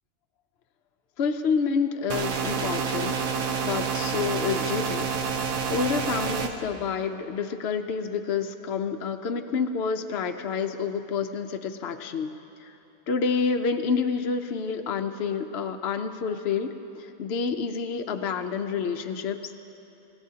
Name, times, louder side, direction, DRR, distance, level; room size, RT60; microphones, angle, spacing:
voice 1, 1.2-3.1 3.6-5.1 5.7-12.3 12.6-12.7 13.1-19.6, left 5 dB, 60° left, 5 dB, 0.8 m, -28 dB
sound 1, 2.1-6.5, right 6 dB, 75° right, 1.3 m, -28 dB
29.0 x 15.5 x 2.8 m, 2.9 s
omnidirectional pair, 1.5 m